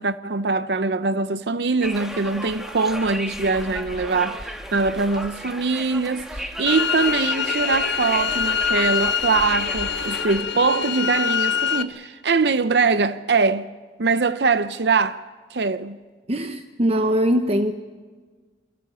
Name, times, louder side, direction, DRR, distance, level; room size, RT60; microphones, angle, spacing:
voice 1, 0.0-13.7 14.0-15.2 15.5-16.0, right 4 dB, 65° right, 0.7 m, -22 dB
Conversation, 1.8-10.4, equal, 5° right, 1.7 m, -34 dB
sound 1, 6.7-11.8, left 7 dB, 85° left, 1.2 m, -24 dB
voice 2, 16.3-17.7, equal, 35° right, 0.8 m, -21 dB
28.0 x 22.0 x 6.9 m
head